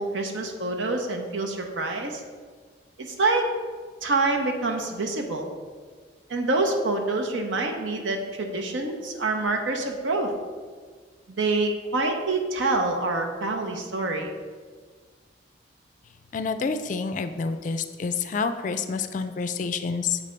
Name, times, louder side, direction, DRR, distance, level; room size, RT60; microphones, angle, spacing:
voice 1, 0.0-2.2 3.0-3.4 4.0-5.5 6.3-10.3 11.3-14.3, right 3 dB, 85° right, 3 dB, 0.8 m, -26 dB
voice 2, 16.3-20.2, left 5 dB, 40° left, 10 dB, 0.3 m, -28 dB
7.3 x 3.3 x 5.1 m, 1.6 s
head